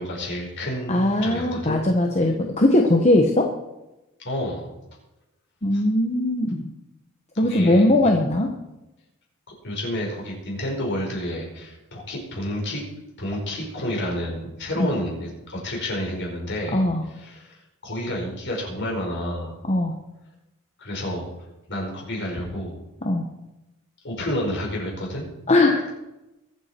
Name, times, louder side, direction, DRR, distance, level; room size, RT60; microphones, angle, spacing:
voice 1, 0.0-1.8 4.2-4.7 5.7-5.8 7.3-8.1 9.6-12.8 13.2-16.8 17.1-17.6 17.8-19.6 20.8-21.3 21.7-22.8 24.0-25.2, left 1 dB, 55° left, -1 dB, 4.8 m, -30 dB
voice 2, 0.9-3.5 5.6-6.7 7.4-8.5 14.8-14.9 16.7-17.0 19.7-19.9 23.0-23.2 25.5-25.9, left 1 dB, 30° left, 2 dB, 1.1 m, -20 dB
22.5 x 8.1 x 4.5 m, 0.96 s
head